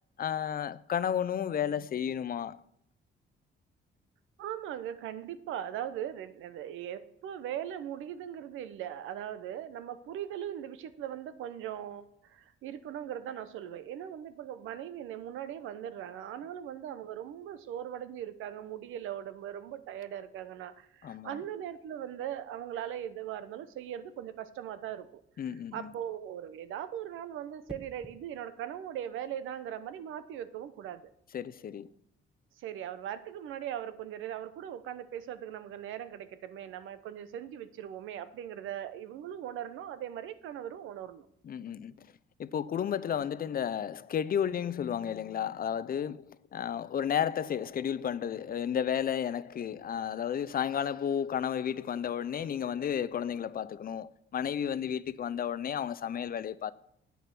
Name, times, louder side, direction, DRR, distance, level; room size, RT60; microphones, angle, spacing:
voice 1, 0.2-2.6 21.0-21.4 25.4-25.9 31.3-31.9 41.4-42.1 42.4-56.7, left 8 dB, 50° left, 0.6 m, -32 dB
voice 2, 4.4-25.2 25.5-31.1 32.6-41.3, right 10 dB, 85° right, 0.8 m, -40 dB
sound 1, 27.7-28.2 30.2-30.5, equal, 5° right, 1.1 m, -48 dB
9.2 x 8.6 x 5.9 m
cardioid pair, 90°, 20 cm